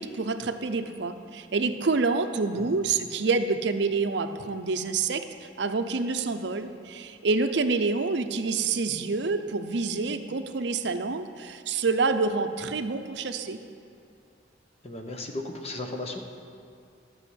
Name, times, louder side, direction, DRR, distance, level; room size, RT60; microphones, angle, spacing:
voice 1, 0.0-13.6, right 4 dB, 70° right, 9 dB, 0.6 m, -27 dB
voice 2, 14.8-16.2, left 2 dB, 35° left, 3 dB, 1.0 m, -35 dB
12.0 x 6.3 x 8.0 m, 2.6 s
head